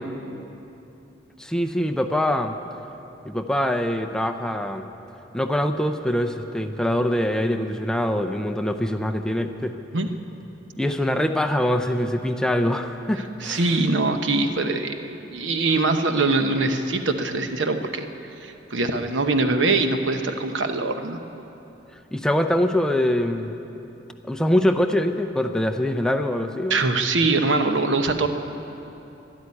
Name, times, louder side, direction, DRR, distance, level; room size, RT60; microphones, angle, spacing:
voice 1, 1.4-2.6 3.2-4.9 5.3-9.8 10.8-13.7 22.1-23.5 24.3-26.8, left 1 dB, 5° left, 7 dB, 0.6 m, -23 dB
voice 2, 13.4-18.1 18.4-21.2 26.7-28.3, right 3 dB, 80° right, 7 dB, 1.0 m, -23 dB
12.5 x 11.5 x 9.7 m, 3.0 s
head